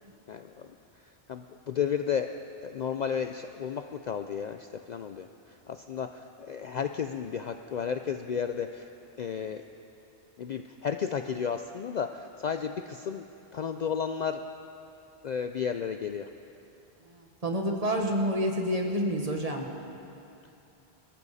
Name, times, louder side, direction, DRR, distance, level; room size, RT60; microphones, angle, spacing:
voice 1, 0.3-0.7 1.3-2.3 2.6-8.9 9.2-9.6 10.4-13.2 13.5-14.4 15.2-16.3, left 7 dB, 55° left, 7 dB, 0.5 m, -33 dB
voice 2, 17.1-19.7, equal, 35° right, 2 dB, 1.4 m, -29 dB
22.5 x 14.0 x 4.2 m, 2.8 s
omnidirectional pair, 1.1 m